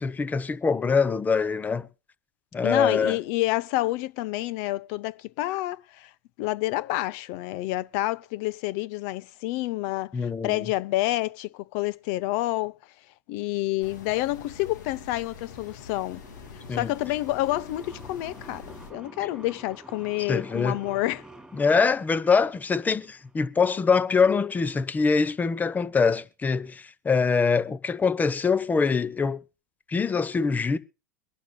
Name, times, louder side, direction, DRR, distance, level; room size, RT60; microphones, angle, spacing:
voice 1, 0.0-1.9 2.5-3.2 10.1-10.7 16.7-16.9 20.3-20.8 21.5-29.4 29.9-30.8, left 5 dB, 15° left, 0.8 m, -24 dB
voice 2, 2.6-6.1 6.4-12.8 13.3-16.2 16.7-18.6 18.9-21.2, left 17 dB, 55° left, 0.6 m, -28 dB
sound 1, 13.8-18.9, left 5 dB, 80° left, 2.3 m, -45 dB
sound 2, 15.5-23.4, right 1 dB, 5° right, 3.0 m, -49 dB
23.5 x 11.5 x 2.2 m
hypercardioid pair, 100°, 10 cm